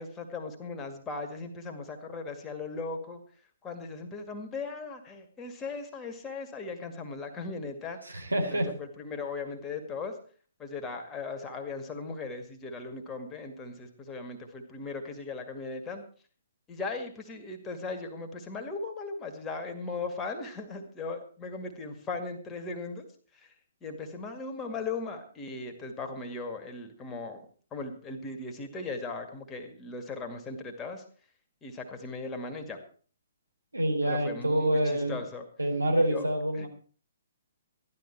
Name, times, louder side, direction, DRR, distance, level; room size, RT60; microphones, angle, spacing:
voice 1, 0.0-3.2 3.6-8.0 8.5-10.1 10.6-16.0 16.7-23.1 23.4-23.5 23.8-27.4 27.7-31.0 31.6-32.8 34.0-35.5 36.0-36.2 36.5-36.7, left 3 dB, 15° left, 4 dB, 2.1 m, -38 dB
voice 2, 8.0-8.7 33.7-35.2 35.6-36.7, right 1 dB, 80° right, 2 dB, 3.7 m, -27 dB
14.5 x 12.0 x 4.7 m, 0.43 s
figure-of-eight pair, 125°, 0 cm